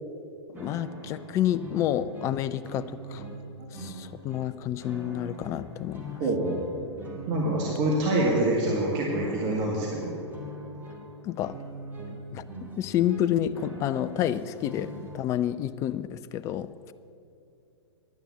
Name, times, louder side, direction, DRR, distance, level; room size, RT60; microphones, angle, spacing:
voice 1, 0.5-3.3 3.7-6.2 11.2-11.6 12.3-12.4 12.8-16.9, left 11 dB, 20° left, 14 dB, 0.3 m, -29 dB
sound 1, 0.5-15.2, right 1 dB, 10° right, 1.8 m, -42 dB
voice 2, 6.2-6.6 7.3-10.1, right 1 dB, 35° right, -2 dB, 1.9 m, -26 dB
10.5 x 9.3 x 7.2 m, 2.6 s
figure-of-eight pair, 105°, 15 cm